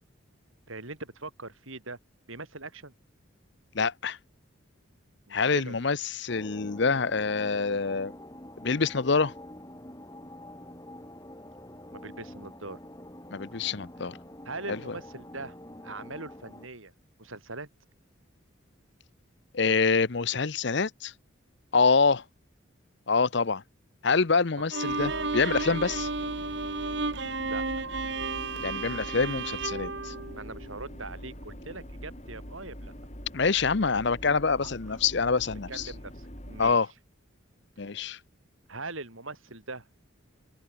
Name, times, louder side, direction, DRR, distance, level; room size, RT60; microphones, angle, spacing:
voice 1, 0.7-2.0 2.3-2.9 5.3-5.8 11.9-12.8 14.4-15.6 15.8-16.9 17.2-17.7 27.4-27.7 30.3-32.9 34.6-34.7 35.7-36.8 38.7-39.9, right 3 dB, 75° right, 5.6 m, -41 dB
voice 2, 3.7-4.2 5.3-8.1 8.6-9.3 13.3-14.2 14.7-14.8 19.5-21.1 21.7-22.2 23.1-23.6 24.0-26.1 28.6-30.1 33.3-35.9 36.6-36.9 37.8-38.2, left 4 dB, 55° left, 0.8 m, -26 dB
sound 1, 6.3-16.7, left 1 dB, 15° left, 4.1 m, -46 dB
Bowed string instrument, 24.7-31.0, right 3 dB, 55° right, 2.2 m, -33 dB
sound 2, 24.9-36.7, equal, 35° left, 7.9 m, -44 dB
open air
head